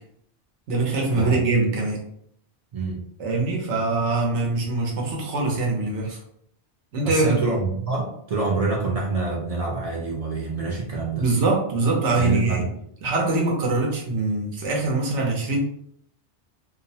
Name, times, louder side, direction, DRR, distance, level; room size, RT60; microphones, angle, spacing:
voice 1, 0.7-2.0 3.2-6.2 6.9-7.4 11.2-12.6 13.0-15.6, right 3 dB, 80° right, -1 dB, 1.0 m, -23 dB
voice 2, 2.7-3.0 7.0-11.2 12.2-12.6, right 3 dB, 60° right, -2 dB, 0.4 m, -26 dB
2.6 x 2.0 x 2.7 m, 0.69 s
omnidirectional pair, 1.2 m